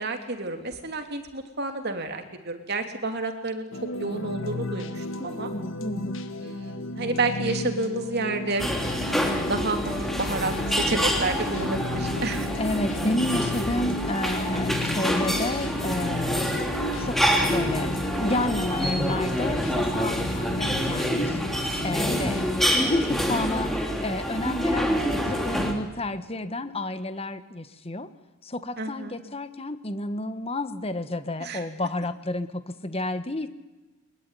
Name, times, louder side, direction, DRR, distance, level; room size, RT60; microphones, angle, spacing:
voice 1, 0.0-3.7 4.0-5.5 6.4-8.7 9.0-9.1 9.5-12.5 22.1-22.2 28.8-29.1 31.4-31.7, right 3 dB, 50° right, 6 dB, 3.0 m, -30 dB
sound 1, 3.7-22.6, left 1 dB, 65° left, 1.7 m, -34 dB
voice 2, 5.2-6.2 12.6-16.7 17.0-17.2 17.5-21.4 21.8-28.1 28.4-33.5, left 1 dB, 30° left, 11 dB, 1.3 m, -31 dB
sound 2, 8.6-25.7, equal, ahead, 3.1 m, -27 dB
22.0 x 21.5 x 10.0 m, 1.2 s
head